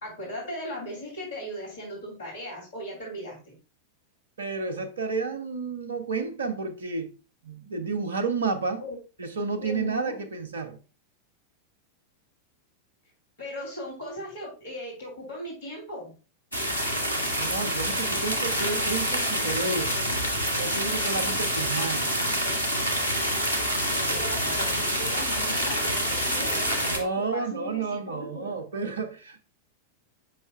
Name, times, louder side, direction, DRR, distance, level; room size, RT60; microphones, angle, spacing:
voice 1, 0.0-3.5 8.8-9.0 9.6-10.1 13.4-16.1 24.1-28.6, equal, 55° left, 2.7 m, -38 dB
voice 2, 4.4-7.1 7.4-8.8 9.2-10.8 17.4-20.0 20.5-22.1 26.5-26.6 26.9-29.4, right 4 dB, 70° right, 0.8 m, -31 dB
sound 1, 16.5-27.0, equal, 80° left, 1.2 m, -27 dB
7.5 x 5.5 x 2.3 m
figure-of-eight pair, 90°, 0 cm